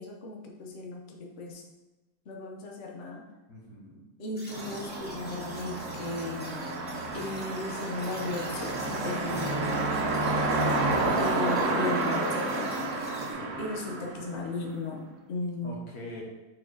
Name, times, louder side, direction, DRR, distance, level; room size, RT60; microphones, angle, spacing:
voice 1, 0.0-1.6 2.3-3.2 4.2-6.7 7.1-9.8 11.1-12.9 13.6-15.0 15.3-15.7, left 2 dB, 55° left, -1 dB, 1.1 m, -36 dB
voice 2, 3.5-4.0 13.3-13.6 15.6-16.2, left 1 dB, 85° left, -1 dB, 1.8 m, -44 dB
sound 1, 4.4-13.3, equal, 10° left, 0.9 m, -48 dB
sound 2, 4.5-14.7, right 2 dB, 60° right, 1.1 m, -30 dB
4.9 x 4.4 x 4.7 m, 1.1 s
omnidirectional pair, 1.6 m